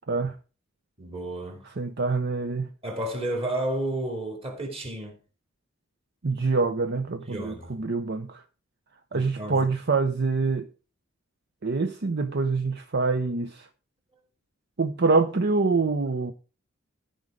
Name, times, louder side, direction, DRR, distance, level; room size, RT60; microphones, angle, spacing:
voice 1, 1.0-1.7 2.8-5.1 7.3-7.8 9.1-9.7, right 1 dB, 30° right, 2.8 m, -32 dB
voice 2, 1.8-2.7 6.2-8.4 9.1-10.7 11.6-13.7 14.8-16.3, right 4 dB, 55° right, 0.7 m, -25 dB
14.0 x 5.2 x 4.9 m
head